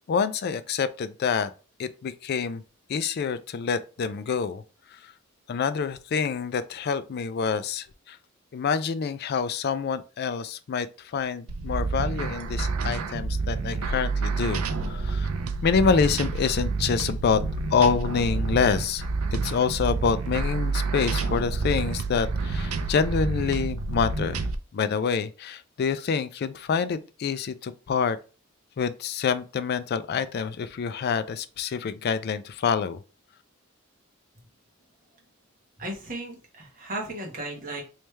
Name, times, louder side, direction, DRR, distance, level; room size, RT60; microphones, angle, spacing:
voice 1, 0.1-1.5 1.8-2.6 2.9-4.6 4.9-5.1 5.5-8.2 8.5-15.3 15.6-17.4 17.7-24.4 24.7-28.2 28.8-33.0, left 6 dB, 50° left, 0.3 m, -27 dB
sound 1, 11.5-24.6, right 3 dB, 90° right, 0.5 m, -29 dB
voice 2, 35.8-37.8, right 1 dB, 40° right, 1.2 m, -35 dB
3.2 x 3.2 x 3.3 m
head